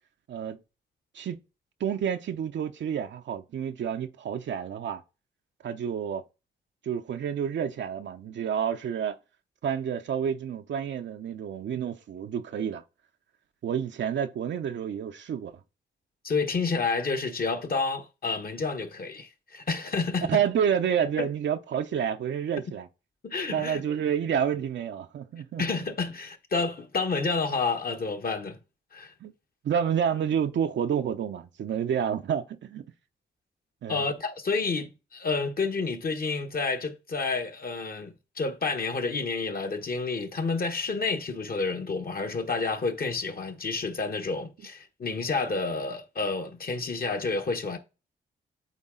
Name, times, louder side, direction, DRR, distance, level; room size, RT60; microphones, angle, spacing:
voice 1, 1.8-5.0 5.6-6.2 6.8-9.2 9.6-12.8 13.6-15.6 20.3-22.9 23.5-25.6 29.2-29.3 29.6-32.8 33.8-34.0, right 8 dB, 65° right, 0.6 m, -29 dB
voice 2, 16.2-20.3 21.2-21.3 23.2-23.8 25.6-28.6 28.9-29.1 33.9-47.8, left 4 dB, 50° left, 1.2 m, -29 dB
8.2 x 3.7 x 3.8 m
cardioid pair, 60°, 20 cm